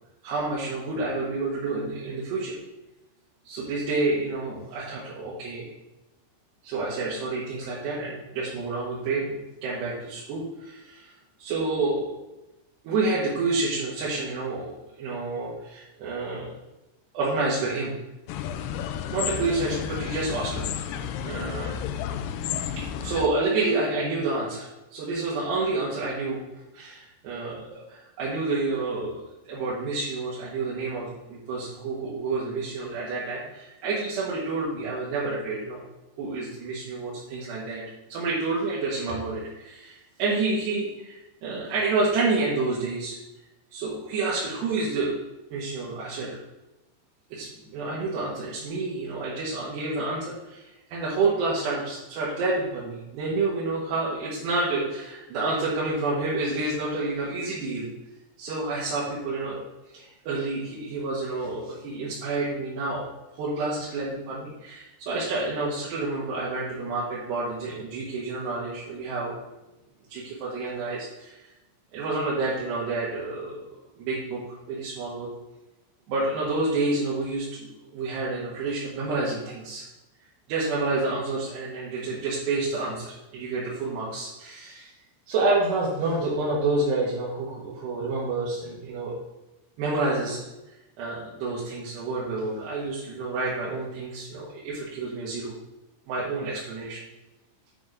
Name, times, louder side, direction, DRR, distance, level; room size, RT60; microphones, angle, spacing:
voice 1, 0.2-2.6 3.5-5.7 6.6-11.1 11.4-12.2 12.8-16.5 17.1-17.9 19.1-21.7 22.8-29.2 29.5-35.8 36.2-37.8 38.1-43.2 43.7-45.2 45.5-46.4 47.3-57.9 58.4-59.6 59.9-63.0 63.3-69.4 70.1-71.5 71.9-73.6 74.0-75.3 76.1-79.9 80.5-84.9 85.3-89.1 89.8-90.4 91.0-95.5 96.1-97.0, right 3 dB, 70° right, -7 dB, 3.7 m, -29 dB
sound 1, 18.3-23.3, left 9 dB, 85° left, 2.5 m, -32 dB
9.2 x 6.0 x 4.9 m, 0.98 s
omnidirectional pair, 5.2 m